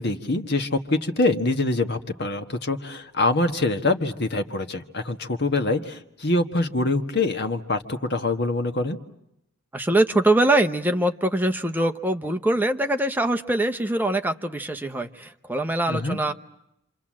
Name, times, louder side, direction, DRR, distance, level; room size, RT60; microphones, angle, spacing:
voice 1, 0.0-9.0 15.9-16.2, left 2 dB, 50° left, 7 dB, 1.5 m, -25 dB
voice 2, 9.7-16.3, right 1 dB, 10° right, 5 dB, 0.9 m, -23 dB
27.5 x 27.0 x 7.5 m, 0.82 s
head